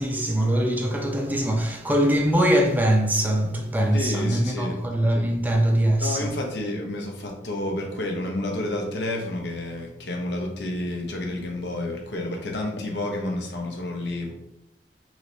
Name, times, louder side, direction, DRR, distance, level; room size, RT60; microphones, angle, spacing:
voice 1, 0.0-6.3, right 1 dB, 10° right, 0.3 m, -22 dB
voice 2, 3.9-4.8 6.0-14.3, left 1 dB, 75° left, 0.7 m, -30 dB
3.2 x 3.1 x 2.6 m
head